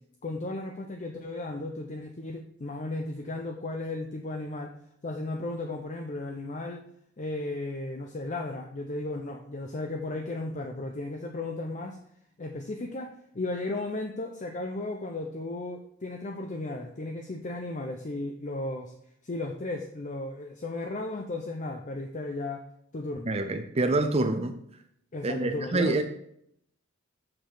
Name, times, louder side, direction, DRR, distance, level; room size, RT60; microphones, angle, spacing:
voice 1, 0.2-4.7 5.0-6.8 7.2-12.0 12.4-18.9 19.2-22.6 22.9-23.3 25.1-26.0, left 2 dB, 40° left, 3 dB, 0.7 m, -35 dB
voice 2, 23.3-24.5 25.2-26.0, right 2 dB, 30° right, 7 dB, 0.6 m, -26 dB
7.8 x 6.5 x 3.9 m, 0.71 s
head